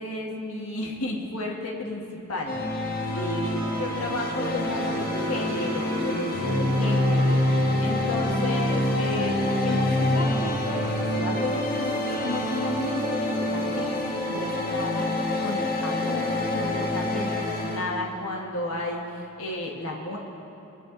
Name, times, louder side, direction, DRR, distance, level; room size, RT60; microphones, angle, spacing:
voice 1, 0.0-2.0 2.3-2.9 3.1-20.2, left 2 dB, 80° left, -2 dB, 1.5 m, -33 dB
sound 1, 2.5-17.8, left 1 dB, 45° left, 1.4 m, -26 dB
sound 2, 3.1-15.7, left 1 dB, 60° right, 1.1 m, -39 dB
sound 3, 6.6-16.9, equal, 15° left, 1.6 m, -36 dB
20.5 x 8.0 x 3.9 m, 3.0 s
head